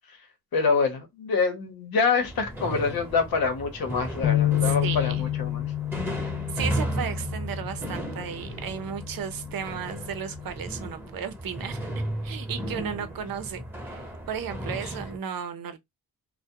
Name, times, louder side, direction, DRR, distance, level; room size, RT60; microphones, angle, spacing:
voice 1, 0.5-5.7, left 4 dB, 85° left, 0.9 m, -26 dB
sound 1, 2.2-15.2, right 1 dB, 5° right, 0.8 m, -35 dB
sound 2, 4.2-10.5, left 13 dB, 40° left, 0.4 m, -30 dB
voice 2, 4.6-5.3 6.5-15.8, right 7 dB, 70° right, 0.6 m, -35 dB
2.2 x 2.1 x 2.8 m
cardioid pair, 65°, 35 cm